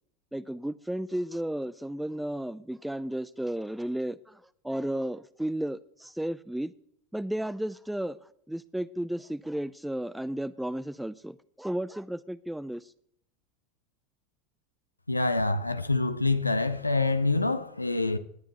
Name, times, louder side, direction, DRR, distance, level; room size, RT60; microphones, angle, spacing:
voice 1, 0.3-6.7 7.1-8.2 8.5-12.9, right 1 dB, 5° right, 0.3 m, -33 dB
voice 2, 15.1-18.2, left 3 dB, 90° left, 0.5 m, -26 dB
19.0 x 9.2 x 3.0 m
figure-of-eight pair, 85°, 0 cm